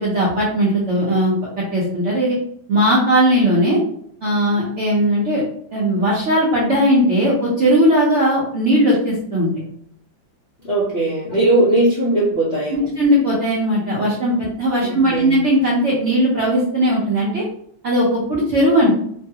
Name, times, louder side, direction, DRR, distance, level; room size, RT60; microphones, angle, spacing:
voice 1, 0.0-1.3 1.7-2.4 2.7-3.8 4.2-5.4 5.7-9.5 13.0-17.4 17.8-18.9, equal, 65° right, -6 dB, 0.7 m, -18 dB
voice 2, 10.6-12.9 14.8-15.4, right 1 dB, 60° left, -7 dB, 0.6 m, -19 dB
3.1 x 2.3 x 2.7 m, 0.66 s
omnidirectional pair, 2.1 m